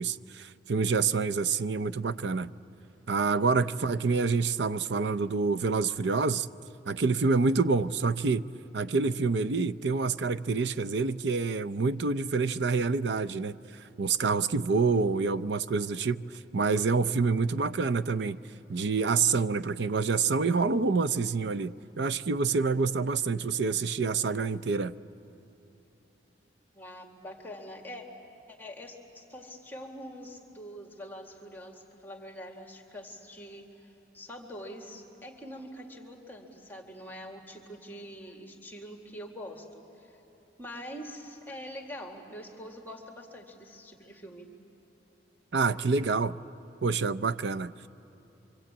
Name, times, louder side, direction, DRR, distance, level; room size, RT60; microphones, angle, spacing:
voice 1, 0.0-2.5 3.1-6.5 6.9-8.4 8.7-13.6 14.0-16.2 16.5-18.4 18.7-24.9 45.5-46.4 46.8-47.7, right 4 dB, 75° right, 0.6 m, -27 dB
voice 2, 26.7-28.0 28.5-40.2 40.6-44.5, equal, 10° left, 1.9 m, -44 dB
26.5 x 25.0 x 8.7 m
head